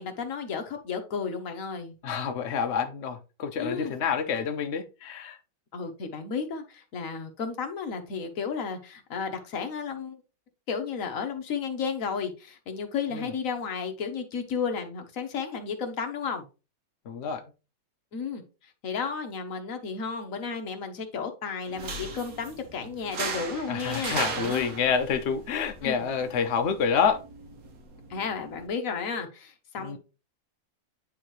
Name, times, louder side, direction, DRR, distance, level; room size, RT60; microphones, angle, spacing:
voice 1, 0.0-1.9 3.6-3.9 5.7-10.2 10.7-16.4 18.1-18.4 18.8-24.6 25.8-26.0 28.1-30.0, left 5 dB, 50° left, 5 dB, 1.2 m, -33 dB
voice 2, 2.0-5.4 13.1-13.3 17.0-17.4 23.7-27.2 29.8-30.0, left 6 dB, 70° left, 6 dB, 0.6 m, -28 dB
sound 1, 21.7-28.7, right 4 dB, 55° right, 1.3 m, -38 dB
9.6 x 3.7 x 3.1 m, 0.31 s
omnidirectional pair, 2.1 m